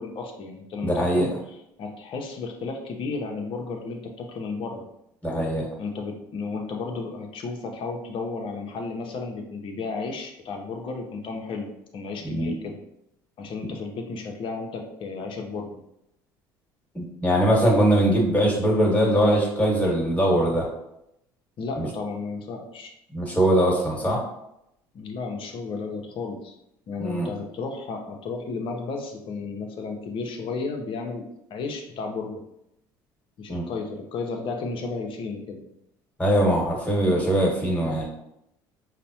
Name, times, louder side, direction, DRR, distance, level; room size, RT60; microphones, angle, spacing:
voice 1, 0.0-4.9 5.8-12.8 13.4-15.8 21.6-22.9 24.9-26.5 26.9-31.2 31.5-32.4 33.4-35.6, left 4 dB, 55° left, 3 dB, 0.7 m, -33 dB
voice 2, 0.8-1.3 5.2-5.7 12.2-12.5 16.9-20.7 21.8-21.9 23.1-24.2 27.0-27.3 33.5-33.6 36.2-38.0, right 1 dB, 15° left, -2 dB, 1.4 m, -21 dB
5.0 x 2.1 x 2.8 m, 0.80 s
hypercardioid pair, 75°, 11 cm